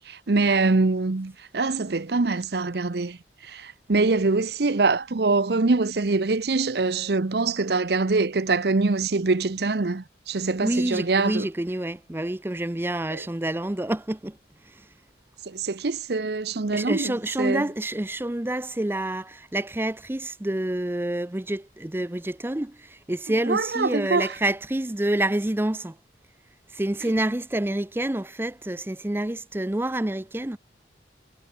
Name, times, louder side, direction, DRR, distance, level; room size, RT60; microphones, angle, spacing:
voice 1, 0.1-3.2 3.4-11.5 13.1-13.2 15.5-17.7 23.5-24.3, right 3 dB, 60° right, 0.7 m, -24 dB
voice 2, 10.6-14.4 16.7-26.0 26.7-30.6, right 1 dB, 10° right, 0.5 m, -28 dB
head